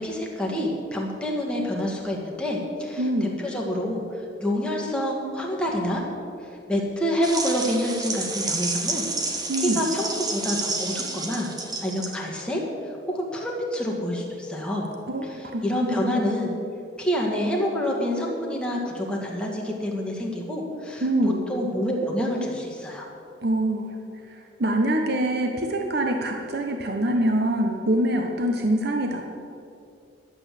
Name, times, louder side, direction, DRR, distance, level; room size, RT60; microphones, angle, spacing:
voice 1, 0.0-6.0 6.4-11.5 11.8-12.6 13.1-14.9 15.2-16.5 17.0-21.1 21.5-23.1, equal, 5° left, -2 dB, 2.0 m, -27 dB
voice 2, 3.0-3.4 9.5-9.8 15.1-16.2 21.0-21.4 23.4-23.9 24.3-29.2, right 1 dB, 60° right, 3 dB, 0.9 m, -25 dB
sound 1, 7.2-12.4, right 3 dB, 20° right, 1.2 m, -30 dB
12.0 x 8.1 x 7.6 m, 2.6 s
head